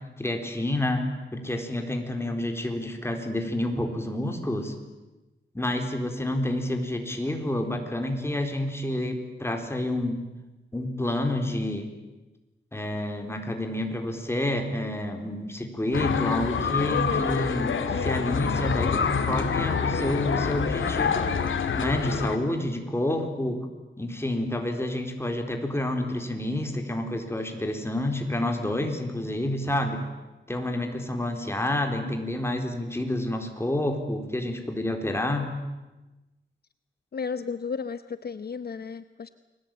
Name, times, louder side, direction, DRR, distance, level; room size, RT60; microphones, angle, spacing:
voice 1, 0.2-1.0 1.3-4.7 5.5-10.2 10.7-11.9 12.7-17.7 18.0-21.2 21.7-23.6 24.0-30.0 30.5-35.5, left 1 dB, 10° left, 4 dB, 4.1 m, -29 dB
sound 1, 15.9-22.4, left 6 dB, 80° left, 2.4 m, -26 dB
voice 2, 37.1-39.3, left 5 dB, 55° left, 12 dB, 0.9 m, -33 dB
30.0 x 21.0 x 9.2 m, 1.1 s
wide cardioid pair, 130°, 20 cm